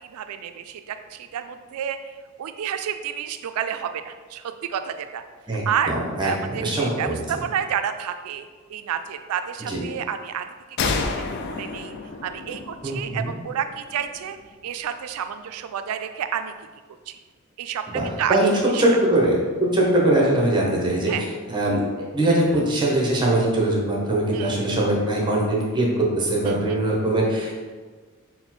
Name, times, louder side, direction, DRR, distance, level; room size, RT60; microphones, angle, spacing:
voice 1, 0.1-5.2 5.7-5.9 6.2-10.5 11.1-11.2 11.6-11.9 12.2-14.4 14.6-16.5 17.1-17.2 17.6-18.8 21.1-21.2 24.3-24.5 26.5-26.8, right 8 dB, 75° right, 9 dB, 0.3 m, -30 dB
voice 2, 5.5-7.2 9.7-9.8 12.8-13.3 17.9-18.0 18.3-18.5 18.8-21.8 22.1-27.6, right 1 dB, 20° right, -2 dB, 0.7 m, -22 dB
sound 1, 10.8-14.3, left 4 dB, 50° left, 0.3 m, -30 dB
4.2 x 2.1 x 4.2 m, 1.4 s
head